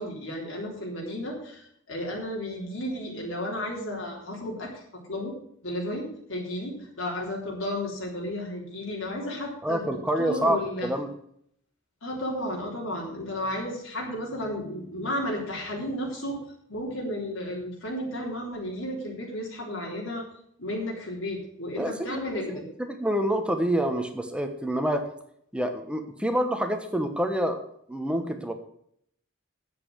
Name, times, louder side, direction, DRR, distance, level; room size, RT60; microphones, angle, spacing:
voice 1, 0.0-4.8 5.1-5.4 5.6-10.9 12.0-16.4 16.7-20.2 20.6-22.6, left 1 dB, 75° left, -3 dB, 3.7 m, -33 dB
voice 2, 9.6-11.1 21.8-22.4 22.8-25.0 25.5-27.6 27.9-28.5, right 1 dB, 5° right, 6 dB, 1.2 m, -27 dB
9.7 x 7.8 x 7.8 m, 0.68 s
head